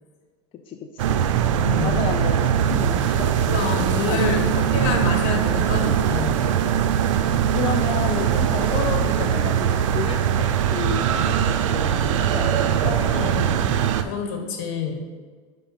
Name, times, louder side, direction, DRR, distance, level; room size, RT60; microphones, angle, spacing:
voice 1, 0.5-1.3 1.8-3.5 4.1-4.3 5.7-6.3 7.2-13.2, left 7 dB, 35° left, 4 dB, 0.6 m, -32 dB
sound 1, 1.0-14.0, right 9 dB, 85° right, 0.5 m, -21 dB
voice 2, 1.6-2.0 3.5-6.4 13.1-13.6 14.0-15.0, left 5 dB, 65° left, 3 dB, 1.5 m, -27 dB
5.4 x 5.4 x 5.9 m, 1.5 s
supercardioid pair, 115°, 16 cm